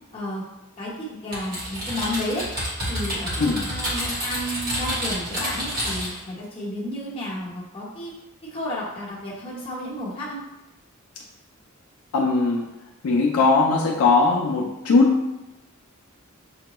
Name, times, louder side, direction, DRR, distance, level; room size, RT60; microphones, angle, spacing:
voice 1, 0.1-0.4 0.8-2.4 2.9-8.1 8.4-10.4, left 1 dB, 25° left, -6 dB, 1.0 m, -32 dB
Typing, 1.3-6.2, equal, 45° right, 1.4 m, -29 dB
voice 2, 12.1-12.7 13.0-15.5, left 3 dB, 85° left, -1 dB, 0.5 m, -20 dB
5.6 x 2.2 x 3.0 m, 0.96 s
head